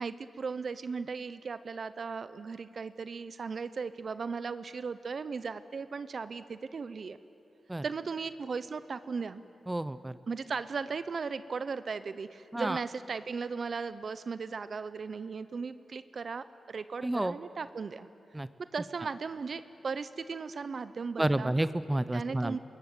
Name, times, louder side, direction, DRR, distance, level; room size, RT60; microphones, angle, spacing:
voice 1, 0.0-7.2 7.8-9.4 10.3-18.1 18.6-21.5 22.1-22.6, right 5 dB, 55° right, 13 dB, 0.7 m, -37 dB
voice 2, 9.7-10.1 12.5-12.8 17.0-17.3 18.3-18.5 21.2-22.6, right 1 dB, 15° right, 14 dB, 0.7 m, -30 dB
25.0 x 21.0 x 9.6 m, 2.8 s
cardioid pair, 85°, 0 cm